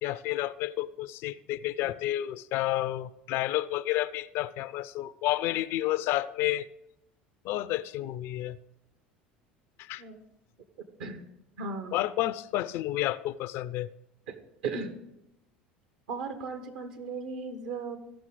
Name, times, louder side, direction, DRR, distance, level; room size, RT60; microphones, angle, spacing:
voice 1, 0.0-6.7 7.4-8.6 9.8-10.0 11.9-13.9, left 15 dB, 50° left, 17 dB, 0.4 m, -30 dB
voice 2, 11.6-12.0 14.3-14.4 14.6-14.9 16.1-18.0, right 4 dB, 65° right, 7 dB, 1.2 m, -36 dB
15.0 x 6.0 x 3.8 m, 0.87 s
figure-of-eight pair, 70°, 5 cm